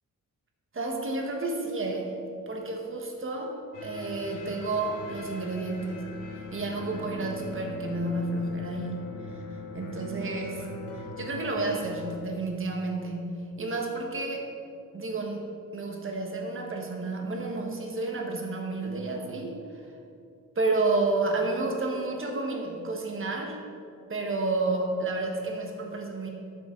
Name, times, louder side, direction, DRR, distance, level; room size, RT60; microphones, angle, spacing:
voice 1, 0.7-2.1 2.5-3.5 3.8-6.0 6.5-9.0 9.3-9.4 9.7-10.6 10.9-14.5 14.9-19.5 20.5-23.6 24.1-26.3, right 2 dB, 40° right, 1 dB, 1.6 m, -30 dB
sound 1, 3.7-12.2, left 2 dB, 70° left, 2.1 m, -40 dB
12.0 x 7.2 x 4.0 m, 2.5 s
cardioid pair, 115°, 33 cm